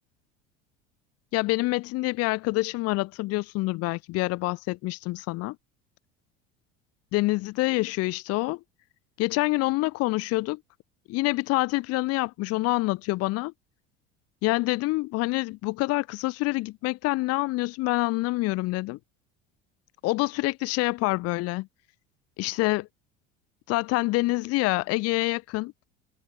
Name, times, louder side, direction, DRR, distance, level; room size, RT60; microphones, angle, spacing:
voice 1, 1.3-5.6 7.1-8.6 9.2-10.6 11.1-13.5 14.4-19.0 20.0-21.7 22.4-22.9 23.7-25.7, left 21 dB, 55° left, 0.7 m, -26 dB
supercardioid pair, 95°, 29 cm